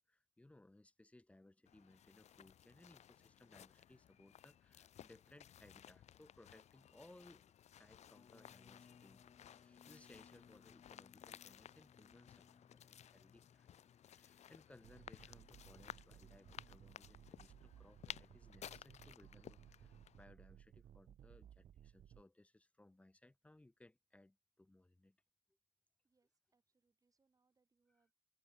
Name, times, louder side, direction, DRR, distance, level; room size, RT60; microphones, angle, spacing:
voice 1, 0.0-25.2 27.9-28.1, left 1 dB, 10° left, 1.8 m, -65 dB
sound 1, 1.7-20.2, left 10 dB, 65° left, 0.8 m, -58 dB
sound 2, 8.1-19.1, left 6 dB, 45° left, 6.5 m, -68 dB
sound 3, 14.8-22.2, right 10 dB, 60° right, 0.5 m, -61 dB
voice 2, 26.0-28.1, right 4 dB, 30° right, 7.8 m, -83 dB
cardioid pair, 120°, 12 cm